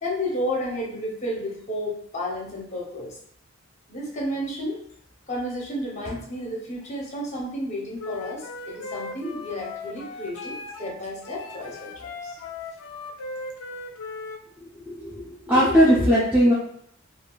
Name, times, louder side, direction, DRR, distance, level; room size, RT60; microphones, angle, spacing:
voice 1, 0.0-3.2 3.9-4.8 5.3-12.4, equal, 35° left, -3 dB, 0.7 m, -32 dB
Wind instrument woodwind instrument, 8.0-10.9 11.2-14.4, left 3 dB, 75° left, 0.3 m, -38 dB
voice 2, 14.9-16.5, equal, 5° right, -10 dB, 0.5 m, -19 dB
3.4 x 2.4 x 2.3 m, 0.67 s
head